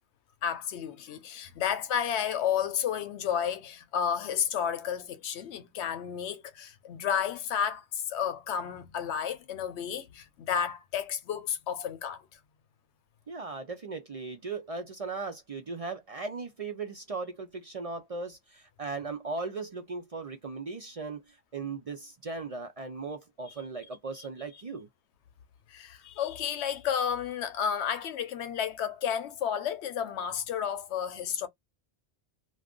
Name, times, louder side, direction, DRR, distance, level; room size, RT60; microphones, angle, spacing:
voice 1, 0.4-12.2 25.7-31.5, left 8 dB, 85° left, 0.9 m, -31 dB
voice 2, 13.3-24.9, right 4 dB, 45° right, 0.5 m, -38 dB
2.4 x 2.3 x 3.6 m
omnidirectional pair, 1.1 m